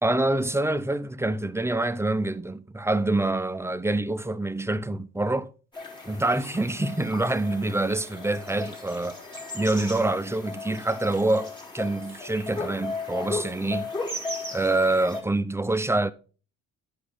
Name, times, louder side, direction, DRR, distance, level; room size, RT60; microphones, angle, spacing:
voice 1, 0.0-5.5 6.1-9.2 9.5-13.9 14.5-16.1, right 2 dB, 10° right, 0.6 m, -26 dB
sound 1, 5.7-15.2, left 2 dB, 15° left, 3.7 m, -36 dB
12.0 x 4.8 x 5.3 m
cardioid pair, 90°, 30 cm